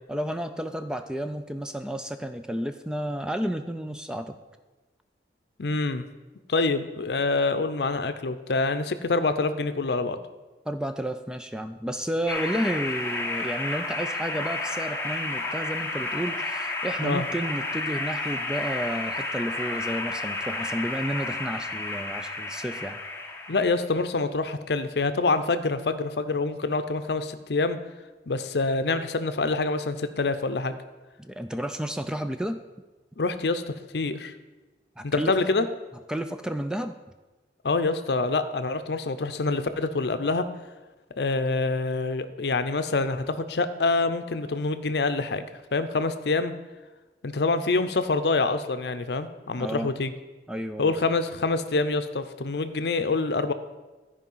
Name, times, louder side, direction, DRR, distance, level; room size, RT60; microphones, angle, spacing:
voice 1, 0.1-4.4 10.7-23.0 31.2-32.6 35.0-35.5 36.1-36.9 49.6-49.9 50.5-50.9, equal, 5° right, 8 dB, 0.3 m, -31 dB
voice 2, 5.6-6.0 6.5-10.2 17.0-17.2 23.5-27.8 28.3-30.7 33.2-34.3 35.0-35.7 37.6-40.4 41.2-46.5 47.2-50.1 50.8-53.5, left 3 dB, 75° left, 10 dB, 0.6 m, -26 dB
sound 1, 12.3-23.7, left 2 dB, 15° left, 0.9 m, -31 dB
13.5 x 5.0 x 5.5 m, 1.2 s
head